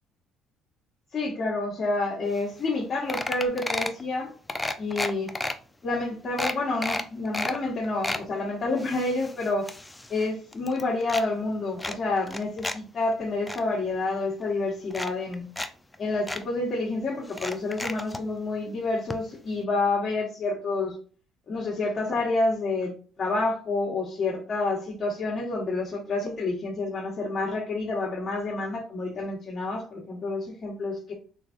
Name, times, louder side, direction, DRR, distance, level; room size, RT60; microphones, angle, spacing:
voice 1, 1.1-4.3 4.8-5.3 5.8-9.7 10.1-15.4 16.0-21.0 21.5-31.1, left 3 dB, 40° left, -6 dB, 1.3 m, -28 dB
sound 1, 2.4-2.5 2.7-2.8 3.1-4.0 4.5-5.5 6.0-6.1 6.4-7.6 7.8-8.2 8.8-10.3 10.5-11.2 11.8-12.8 13.1-13.6 14.4-14.5 14.9-15.7 15.9-16.0 16.3-16.4 17.3-18.2 19.1-19.2 19.5-19.6, left 1 dB, 10° left, 0.4 m, -32 dB
3.5 x 3.2 x 2.4 m, 0.40 s
supercardioid pair, 75°, 0 cm